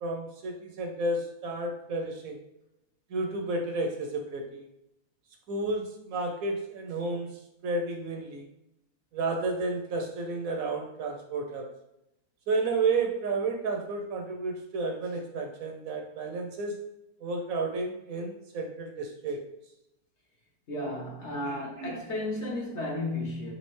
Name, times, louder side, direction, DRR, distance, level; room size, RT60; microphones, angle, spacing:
voice 1, 0.0-2.4 3.1-4.7 5.5-8.5 9.1-11.8 12.5-16.8 17.2-19.4 21.4-22.0, right 3 dB, 70° right, 3 dB, 0.9 m, -32 dB
voice 2, 20.7-23.5, left 1 dB, 50° left, -3 dB, 1.1 m, -33 dB
4.2 x 3.2 x 3.1 m, 0.86 s
omnidirectional pair, 1.7 m